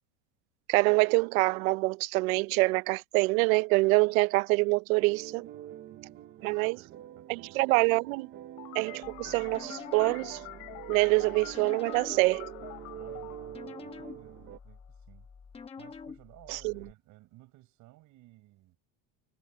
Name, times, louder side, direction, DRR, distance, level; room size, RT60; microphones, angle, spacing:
voice 1, 0.7-5.5 6.4-6.8 7.3-8.3 8.7-10.4 10.9-12.5 16.5-16.7, right 25 dB, 65° right, 0.6 m, -25 dB
sound 1, 5.0-14.6, right 12 dB, 25° right, 0.7 m, -46 dB
voice 2, 5.5-7.6 12.9-15.3 15.8-18.8, right 18 dB, 40° right, 6.6 m, -57 dB
sound 2, 8.6-14.8, left 30 dB, 60° left, 3.4 m, -47 dB
sound 3, 9.0-16.9, left 5 dB, 15° left, 1.1 m, -48 dB
supercardioid pair, 170°, 45 cm